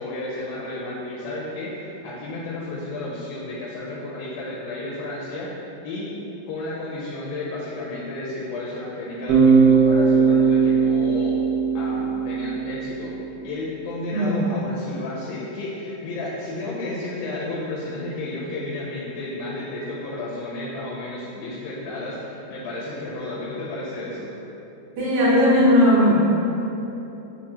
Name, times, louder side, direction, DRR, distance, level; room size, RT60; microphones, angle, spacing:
voice 1, 0.0-5.6 5.8-6.1 6.5-11.4 11.7-13.1 13.4-24.3, left 2 dB, 80° left, -6 dB, 2.2 m, -32 dB
Bass guitar, 9.3-13.3, right 5 dB, 90° right, 1.9 m, -19 dB
voice 2, 14.1-14.4 25.0-26.1, equal, 70° right, -10 dB, 1.7 m, -17 dB
5.9 x 2.0 x 2.8 m, 3.0 s
omnidirectional pair, 4.3 m